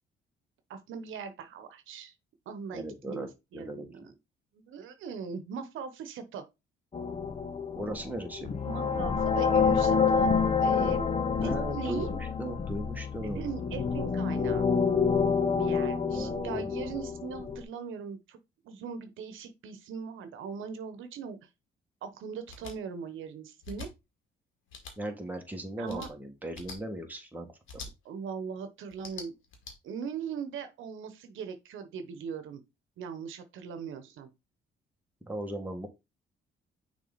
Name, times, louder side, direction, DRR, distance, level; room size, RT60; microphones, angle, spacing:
voice 1, 0.7-2.1 2.5-4.1 4.6-6.5 8.7-10.3 10.6-11.1 11.4-12.1 13.3-14.7 15.6-18.4 18.6-21.4 22.0-23.9 25.8-26.1 28.0-29.3 29.8-32.6 33.0-34.3, right 6 dB, 80° right, 1.0 m, -40 dB
voice 2, 2.7-3.9 7.7-8.5 11.4-13.5 16.1-16.8 25.0-27.5 27.7-27.9 35.3-35.9, right 1 dB, 10° right, 1.8 m, -38 dB
sound 1, 6.9-17.6, left 5 dB, 30° left, 0.8 m, -28 dB
sound 2, 22.5-22.7 23.6-23.9 24.7-24.9 25.8-26.1 26.5-26.8 27.7-27.9 28.9-29.7, left 4 dB, 80° left, 2.1 m, -43 dB
6.3 x 3.8 x 4.0 m
cardioid pair, 90°, 20 cm